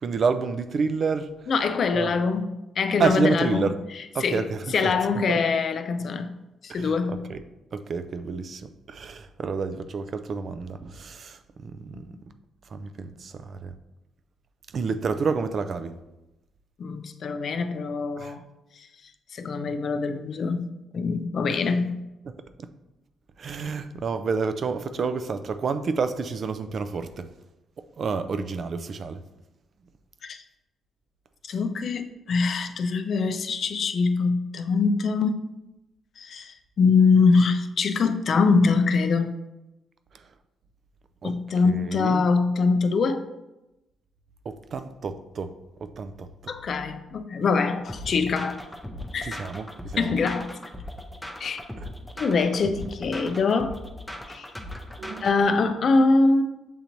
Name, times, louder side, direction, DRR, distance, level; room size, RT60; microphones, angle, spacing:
voice 1, 0.0-1.3 1.9-2.2 3.0-3.7 4.1-4.9 5.3-5.4 6.7-7.4 7.7-12.1 12.7-13.7 14.7-15.9 18.2-18.3 21.5-21.6 22.6-22.7 23.4-27.3 27.8-29.2 40.1-40.2 41.2-41.3 41.6-42.3 44.5-45.6 45.8-46.5 49.2-50.2 51.8-51.9 55.0-55.3, right 5 dB, 50° right, 0.3 m, -29 dB
voice 2, 1.5-2.5 2.8-3.7 4.2-4.4 4.7-6.3 6.6-7.2 12.1-12.2 16.8-18.4 18.8-18.9 19.3-20.7 20.9-22.0 30.2-30.4 31.5-35.4 36.2-39.3 41.2-43.3 46.5-48.6 49.1-49.4 50.0-50.5 51.4-51.6 52.2-53.8 54.3-54.5 55.2-56.4, left 4 dB, 55° left, 0.3 m, -23 dB
sound 1, 47.9-55.5, left 1 dB, 5° left, 0.5 m, -39 dB
6.9 x 2.9 x 2.6 m
cardioid pair, 90°, 0 cm